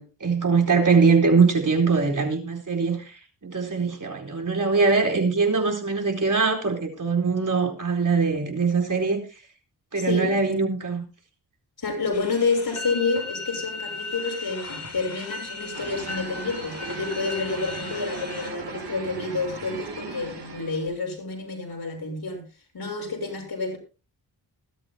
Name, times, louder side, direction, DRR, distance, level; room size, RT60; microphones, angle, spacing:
voice 1, 0.0-3.1 3.4-9.2 9.9-11.0, right 4 dB, 45° right, 4.3 m, -22 dB
voice 2, 9.9-10.4 11.8-22.4 22.7-23.8, left 4 dB, 60° left, 6.5 m, -29 dB
sound 1, 12.1-18.5, left 3 dB, 40° left, 5.2 m, -36 dB
sound 2, 15.7-21.0, right 4 dB, 75° right, 5.1 m, -38 dB
20.5 x 13.0 x 2.2 m
wide cardioid pair, 100°, 41 cm